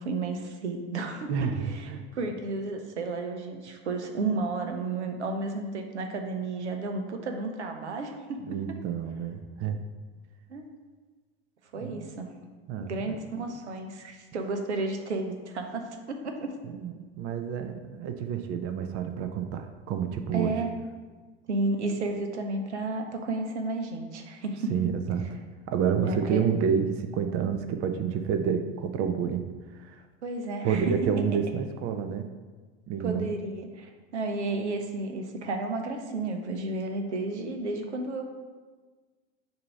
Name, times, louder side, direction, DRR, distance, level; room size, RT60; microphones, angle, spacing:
voice 1, 0.0-8.6 10.5-10.7 11.7-12.3 12.8-16.6 20.3-20.7 21.5-24.7 26.0-26.4 30.2-30.9 33.0-38.3, right 3 dB, 85° right, 5 dB, 0.7 m, -32 dB
voice 2, 1.3-2.0 8.5-9.9 11.8-12.1 12.7-13.2 16.6-20.5 24.7-25.3 25.7-29.5 29.7-30.0 30.6-32.3 32.9-33.3, right 7 dB, 45° right, 7 dB, 0.6 m, -29 dB
6.6 x 2.7 x 5.7 m, 1.4 s
hypercardioid pair, 80°, 33 cm